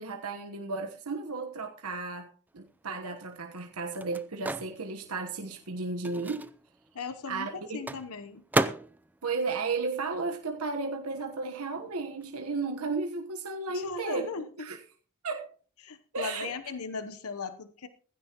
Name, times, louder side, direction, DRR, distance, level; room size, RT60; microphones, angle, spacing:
voice 1, 0.0-6.5 7.3-7.8 9.2-14.8 15.2-15.5 16.1-16.5, right 4 dB, 80° right, 1.2 m, -34 dB
Microwave oven, 2.6-10.7 11.0-12.9, right 1 dB, 10° right, 0.5 m, -37 dB
voice 2, 6.9-7.5 7.7-8.4 13.7-14.7 15.8-17.9, left 4 dB, 75° left, 1.0 m, -37 dB
16.5 x 15.5 x 3.0 m
head